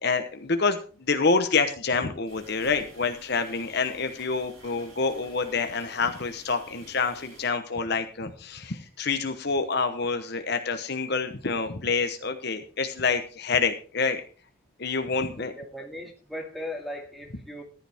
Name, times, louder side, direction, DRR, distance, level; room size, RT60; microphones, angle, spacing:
voice 1, 0.0-14.2 14.8-15.5, left 4 dB, 50° left, 7 dB, 1.0 m, -27 dB
sound 1, 2.3-7.5, right 2 dB, 80° right, 6.4 m, -51 dB
voice 2, 15.4-17.6, left 1 dB, ahead, -1 dB, 2.2 m, -38 dB
14.5 x 11.0 x 3.5 m, 0.39 s
head